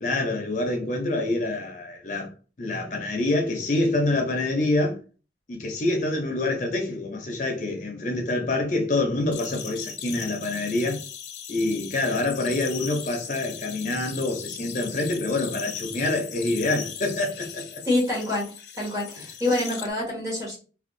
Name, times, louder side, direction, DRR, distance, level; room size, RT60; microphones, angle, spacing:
voice 1, 0.0-2.3 2.6-5.0 5.5-11.0 11.5-17.8, left 2 dB, 45° left, 0.6 m, -26 dB
sound 1, 9.3-19.9, left 8 dB, 85° left, 0.6 m, -38 dB
voice 2, 17.8-18.5 18.8-20.6, left 2 dB, 15° right, 1.4 m, -26 dB
3.5 x 2.4 x 2.6 m
head